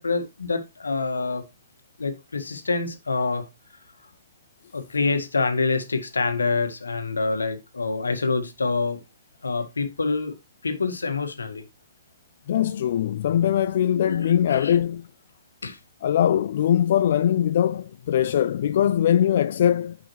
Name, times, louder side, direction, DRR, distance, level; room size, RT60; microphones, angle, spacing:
voice 1, 0.0-1.4 2.0-3.5 4.7-9.0 9.4-10.3 10.6-11.6 14.0-14.8 15.6-15.8, left 4 dB, 80° left, 1.7 m, -26 dB
voice 2, 12.5-15.1 16.0-20.0, left 10 dB, 55° left, 0.3 m, -21 dB
9.1 x 5.6 x 3.1 m
figure-of-eight pair, 125°, 0 cm